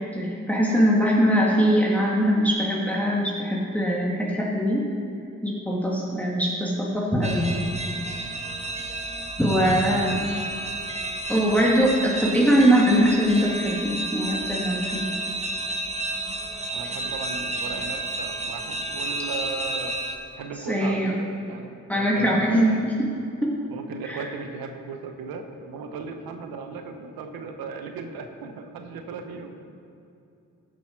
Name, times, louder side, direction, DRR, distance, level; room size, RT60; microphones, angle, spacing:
voice 1, 0.1-4.9 5.4-7.6 9.4-10.2 11.3-15.1 20.7-21.1 21.9-22.9 23.4-23.5 24.0-24.2, equal, 5° left, -4 dB, 2.0 m, -22 dB
sound 1, 7.2-20.1, right 2 dB, 20° right, 1.3 m, -31 dB
voice 2, 16.7-20.0 20.3-22.9 23.7-29.6, right 5 dB, 90° right, 6 dB, 0.9 m, -37 dB
15.5 x 5.6 x 4.5 m, 2.6 s
supercardioid pair, 50°, 35 cm